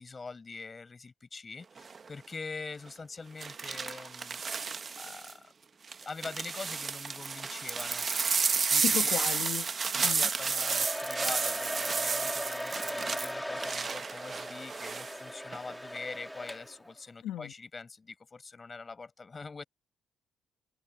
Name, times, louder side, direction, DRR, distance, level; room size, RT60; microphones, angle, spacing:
voice 1, 0.0-4.4 4.9-5.5 6.0-9.2 9.9-19.6, left 4 dB, 30° left, 5.6 m, -44 dB
sound 1, 1.8-2.1 3.4-5.3 5.9-15.1 15.5-16.0, right 5 dB, 40° right, 1.2 m, -32 dB
voice 2, 8.8-10.3 17.2-17.5, left 12 dB, 85° left, 1.7 m, -35 dB
Domestic sounds home sounds, 10.2-16.9, equal, ahead, 4.2 m, -38 dB
cardioid pair, 90°, 0 cm